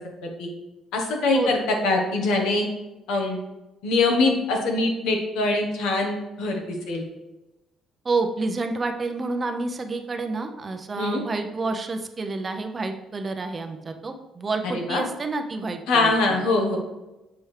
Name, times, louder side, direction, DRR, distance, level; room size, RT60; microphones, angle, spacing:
voice 1, 0.9-2.7 3.1-3.4 3.8-7.0 11.0-11.2 14.6-15.0 15.9-16.8, left 2 dB, 90° left, 2 dB, 1.2 m, -23 dB
voice 2, 8.0-16.4, right 3 dB, 30° right, 6 dB, 0.7 m, -29 dB
6.9 x 4.4 x 3.3 m, 1.0 s
cardioid pair, 95°, 0 cm